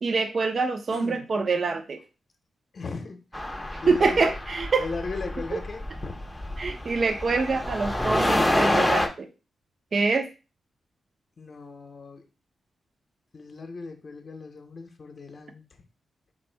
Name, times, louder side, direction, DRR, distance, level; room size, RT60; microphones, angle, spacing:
voice 1, 0.0-2.0 3.9-4.9 5.5-5.6 6.6-9.3 9.9-10.3, right 4 dB, 45° right, 8 dB, 0.5 m, -25 dB
voice 2, 0.9-1.3 2.7-3.2 3.8-4.3 4.8-6.1 11.4-12.3 13.3-15.7, left 4 dB, 45° left, 5 dB, 0.7 m, -37 dB
sound 1, 3.3-9.1, left 1 dB, 5° left, 0.6 m, -27 dB
4.4 x 2.6 x 4.4 m, 0.30 s
wide cardioid pair, 125°, 0 cm